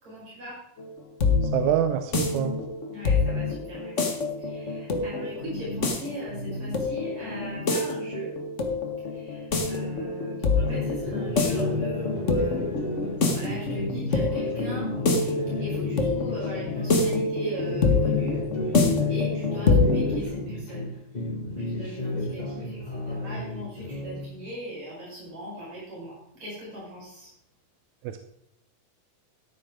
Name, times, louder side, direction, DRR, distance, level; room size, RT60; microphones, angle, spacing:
voice 1, 0.0-0.6 2.9-8.3 9.1-12.9 13.3-14.9 15.6-18.4 18.6-18.8 19.1-20.9 21.5-27.3, equal, 55° right, -7 dB, 6.5 m, -39 dB
sound 1, 0.8-20.2, left 3 dB, 85° left, 0.6 m, -26 dB
voice 2, 1.5-2.6 28.0-28.2, right 10 dB, 75° right, 8 dB, 2.0 m, -25 dB
sound 2, 10.7-17.2 17.6-20.9 21.1-24.3, left 1 dB, 15° left, 1.8 m, -33 dB
13.5 x 11.0 x 3.7 m, 0.75 s
omnidirectional pair, 3.7 m